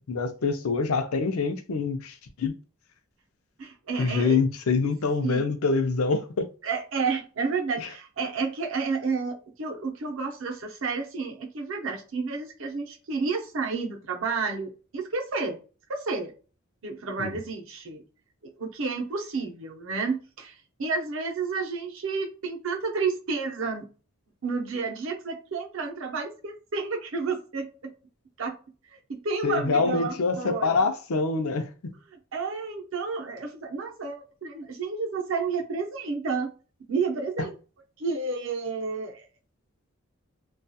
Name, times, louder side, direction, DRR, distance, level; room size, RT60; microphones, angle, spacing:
voice 1, 0.1-2.6 4.0-6.5 7.8-7.9 17.2-17.4 29.4-31.9 37.4-37.5, left 4 dB, 85° left, 0.5 m, -25 dB
voice 2, 3.6-4.4 5.2-5.5 6.6-15.6 15.9-16.3 16.8-18.0 18.6-23.9 24.4-27.9 28.4-28.6 29.1-30.8 32.3-36.5 36.9-37.5 38.0-39.3, right 4 dB, 65° right, 0.6 m, -31 dB
2.3 x 2.2 x 2.7 m
head